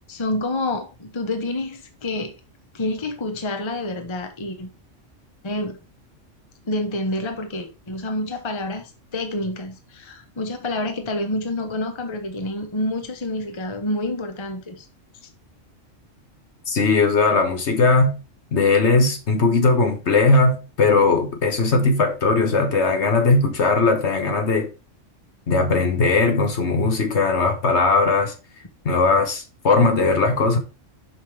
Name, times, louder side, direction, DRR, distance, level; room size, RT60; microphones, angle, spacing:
voice 1, 0.1-2.3 2.7-4.7 5.4-5.8 6.6-14.9, left 1 dB, 25° left, 0.9 m, -28 dB
voice 2, 16.7-18.1 18.5-24.7 25.5-28.3 28.8-30.6, left 3 dB, 60° left, 1.4 m, -19 dB
5.6 x 5.3 x 4.7 m
omnidirectional pair, 1.3 m